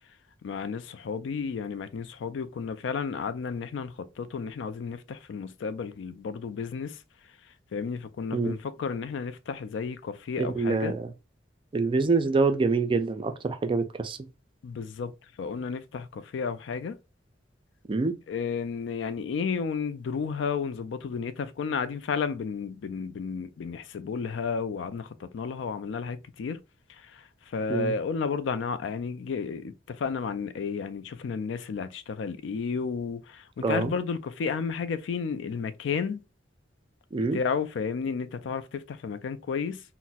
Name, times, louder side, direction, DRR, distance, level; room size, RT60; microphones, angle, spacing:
voice 1, 0.4-7.0 7.7-10.9 14.6-15.1 15.4-17.0 18.3-26.6 27.0-36.2 37.2-39.8, left 5 dB, 75° left, 0.3 m, -32 dB
voice 2, 10.4-11.1 11.7-14.3 17.9-18.2 27.7-27.9 33.6-33.9 37.1-37.4, right 3 dB, 30° right, 0.3 m, -26 dB
4.0 x 2.1 x 2.2 m
head